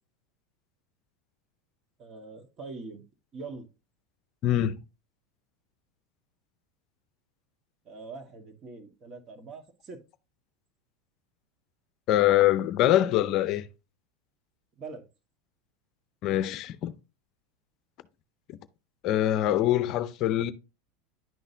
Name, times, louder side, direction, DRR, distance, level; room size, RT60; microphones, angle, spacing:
voice 1, 2.0-3.0 3.3-3.7 7.8-10.0 14.8-15.1, right 3 dB, 35° right, 1.6 m, -43 dB
voice 2, 4.4-4.8 12.1-13.6 16.2-16.9 19.0-20.5, left 13 dB, 50° left, 0.5 m, -24 dB
10.5 x 4.0 x 2.7 m
hypercardioid pair, 110°, 0 cm